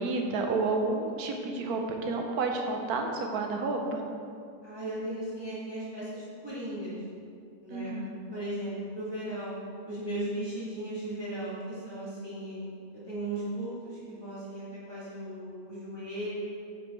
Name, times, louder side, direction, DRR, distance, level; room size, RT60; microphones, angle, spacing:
voice 1, 0.0-4.0 7.7-8.2, right 3 dB, 85° right, 3 dB, 1.3 m, -30 dB
voice 2, 4.6-7.0 7.6-7.9 8.3-9.5 9.8-12.7 12.9-16.5, right 1 dB, 15° right, -10 dB, 1.6 m, -36 dB
8.6 x 4.8 x 3.6 m, 2.3 s
omnidirectional pair, 1.6 m